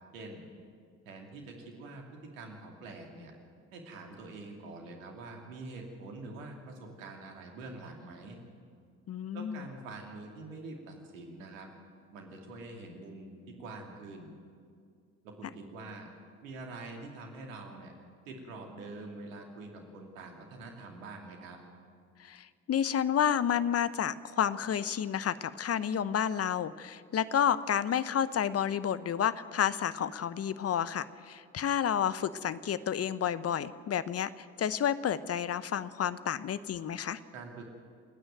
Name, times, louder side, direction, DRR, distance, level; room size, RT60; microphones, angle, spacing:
voice 1, 0.1-0.4 1.0-2.1 2.3-3.3 3.7-8.4 9.3-11.7 12.1-14.3 15.2-16.1 16.4-17.9 18.3-21.6 37.3-37.6, right 3 dB, 80° right, 2 dB, 2.7 m, -45 dB
voice 2, 9.1-9.7 22.2-37.2, left 9 dB, 40° left, 16 dB, 0.8 m, -30 dB
29.0 x 9.8 x 9.2 m, 2.2 s
hypercardioid pair, 50°, 39 cm